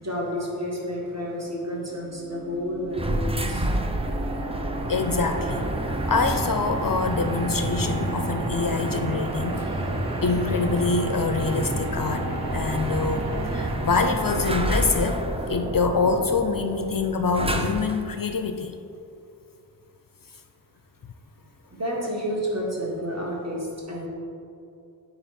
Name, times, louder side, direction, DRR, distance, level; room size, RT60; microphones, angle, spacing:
voice 1, 0.0-3.7 4.1-4.2 21.7-24.1, equal, 35° right, -3 dB, 1.7 m, -30 dB
sound 1, 1.8-15.0, right 3 dB, 60° right, 0.6 m, -35 dB
sound 2, 2.9-18.1, right 1 dB, 15° right, 0.5 m, -29 dB
voice 2, 4.9-9.7 10.2-18.7, left 4 dB, 50° left, 6 dB, 0.5 m, -25 dB
9.0 x 4.0 x 4.2 m, 2.6 s
wide cardioid pair, 50°, 42 cm